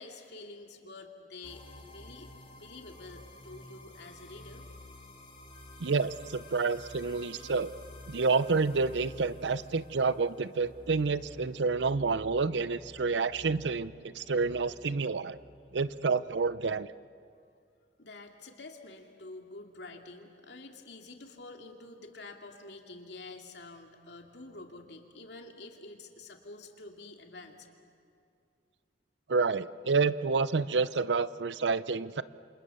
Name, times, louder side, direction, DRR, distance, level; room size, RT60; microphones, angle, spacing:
voice 1, 0.0-1.7 1.9-2.3 2.5-4.7 18.0-27.7, left 2 dB, 75° left, 3 dB, 2.6 m, -48 dB
sound 1, 1.4-16.6, left 1 dB, 30° left, 3.7 m, -51 dB
voice 2, 5.8-7.7 8.1-15.4 15.7-16.9 29.3-32.2, right 4 dB, 90° right, 16 dB, 0.7 m, -29 dB
28.5 x 26.0 x 7.0 m, 2.4 s
head